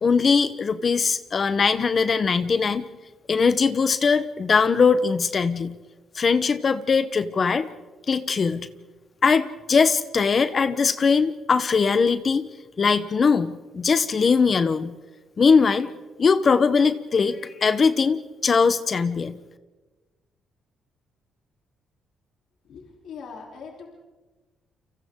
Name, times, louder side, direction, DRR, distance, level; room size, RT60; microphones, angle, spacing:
voice 1, 0.0-2.9 3.3-5.7 6.1-7.7 8.1-8.7 9.2-12.5 12.8-15.0 15.4-15.9 16.2-19.3, left 5 dB, 40° left, 12 dB, 1.0 m, -21 dB
voice 2, 22.6-23.9, left 5 dB, 70° left, 0 dB, 3.4 m, -41 dB
29.5 x 25.0 x 3.8 m, 1.2 s
cardioid pair, 90°, 0 cm